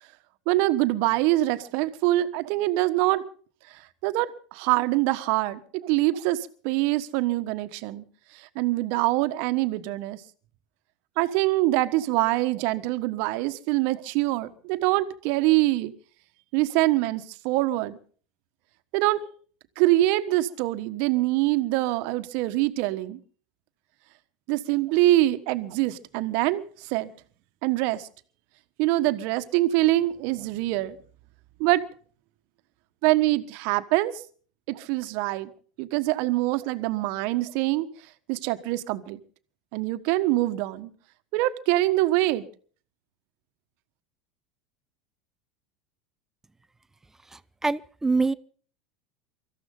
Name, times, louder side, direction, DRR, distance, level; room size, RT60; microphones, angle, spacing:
voice 1, 0.5-3.2 3.7-8.0 8.3-10.2 11.2-15.9 16.5-18.0 18.9-19.2 19.8-23.2 24.5-27.1 27.6-28.1 28.8-30.9 31.6-31.8 33.0-34.1 34.7-35.5 35.8-37.9 38.3-39.2 39.7-40.9 41.3-42.5, right 17 dB, 60° right, 1.4 m, -24 dB
voice 2, 47.3-48.3, right 3 dB, 10° right, 0.7 m, -25 dB
24.5 x 14.0 x 3.9 m
hypercardioid pair, 90°, 4 cm